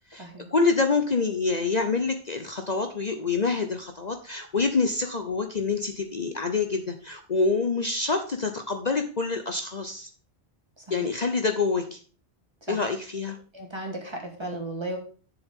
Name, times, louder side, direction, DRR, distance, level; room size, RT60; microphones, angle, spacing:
voice 1, 0.1-10.1 10.9-12.0 12.7-13.4, left 4 dB, 45° left, 6 dB, 0.9 m, -26 dB
voice 2, 10.8-11.1 12.6-12.8 13.5-15.0, right 1 dB, 25° right, 1 dB, 2.6 m, -35 dB
10.5 x 7.3 x 3.7 m, 0.39 s
omnidirectional pair, 1.1 m